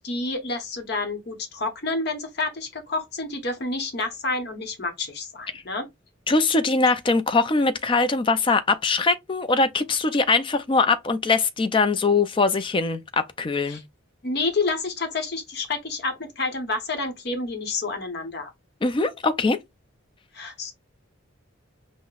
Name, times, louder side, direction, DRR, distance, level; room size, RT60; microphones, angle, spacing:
voice 1, 0.0-5.9 13.7-13.8 14.2-18.5 20.3-20.7, left 3 dB, 50° left, 0.8 m, -29 dB
voice 2, 6.3-13.8 18.8-19.6, left 3 dB, 25° left, 0.3 m, -22 dB
5.6 x 2.0 x 2.3 m
head